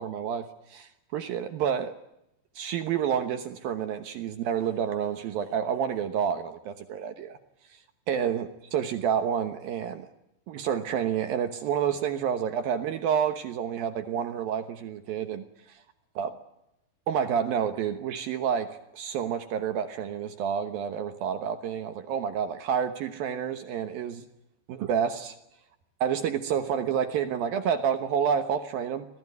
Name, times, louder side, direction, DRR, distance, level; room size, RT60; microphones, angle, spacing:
voice 1, 0.0-1.9 2.6-7.4 8.1-10.1 10.5-15.8 16.2-16.3 17.1-24.2 24.7-25.4 26.0-29.1, right 8 dB, 70° right, 9 dB, 2.5 m, -29 dB
25.5 x 18.0 x 9.5 m, 0.86 s
omnidirectional pair, 5.2 m